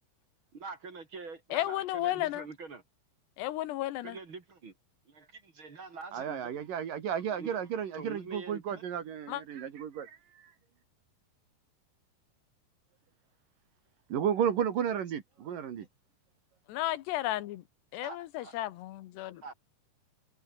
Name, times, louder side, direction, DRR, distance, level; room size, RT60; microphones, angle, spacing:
voice 1, 0.5-2.8 4.0-4.7 5.1-6.5 7.4-7.6 7.9-8.9 18.0-18.6 19.4-19.5, right 4 dB, 35° right, 3.1 m, -45 dB
voice 2, 1.5-2.5 3.4-4.2 9.3-9.4 16.7-17.6 17.9-19.5, left 15 dB, 85° left, 3.3 m, -33 dB
voice 3, 6.1-10.1 14.1-15.9, right 8 dB, 60° right, 3.4 m, -33 dB
omnidirectional pair, 4.7 m